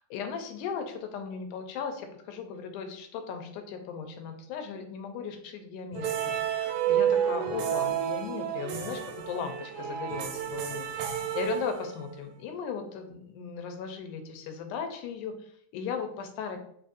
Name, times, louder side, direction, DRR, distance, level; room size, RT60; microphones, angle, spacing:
voice 1, 0.1-9.0 9.3-16.6, left 6 dB, 85° left, 6 dB, 2.1 m, -37 dB
sound 1, 5.9-12.2, right 9 dB, 85° right, 2.2 m, -30 dB
4.6 x 4.0 x 2.5 m, 0.66 s
omnidirectional pair, 3.5 m